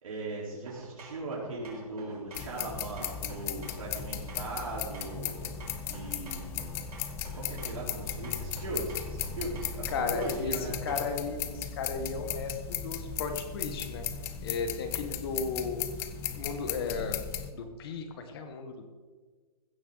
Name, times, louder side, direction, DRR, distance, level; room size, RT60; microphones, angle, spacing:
voice 1, 0.0-5.4 5.9-6.8 7.3-10.8, right 2 dB, 60° right, -5 dB, 4.3 m, -39 dB
sound 1, 0.7-11.2, right 2 dB, 75° right, 4.8 m, -49 dB
sound 2, 2.3-17.5, left 8 dB, 10° left, 0.4 m, -36 dB
voice 2, 9.9-14.1 14.4-15.9 16.3-18.9, left 4 dB, 40° left, 7 dB, 1.6 m, -35 dB
15.5 x 13.0 x 4.0 m, 1.4 s
hypercardioid pair, 155°, 20 cm